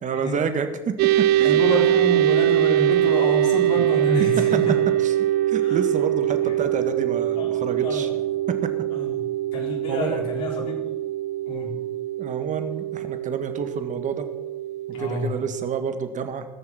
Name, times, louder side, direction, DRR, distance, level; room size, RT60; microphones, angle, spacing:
voice 1, 0.0-1.6 3.8-3.9 5.0-5.1 5.5-8.1 8.5-8.7 9.9-10.2 12.2-14.3 14.9-16.5, right 6 dB, 40° right, 8 dB, 1.7 m, -29 dB
sound 1, 1.0-15.7, right 13 dB, 55° right, 0.5 m, -23 dB
voice 2, 1.4-4.8 5.6-5.8 6.4-6.5 7.4-7.5 7.8-8.1 8.9-9.2 9.5-10.9 11.5-11.7 14.9-15.4, left 1 dB, 75° left, -2 dB, 4.0 m, -28 dB
19.5 x 6.5 x 6.0 m, 1.2 s
hypercardioid pair, 75°, 19 cm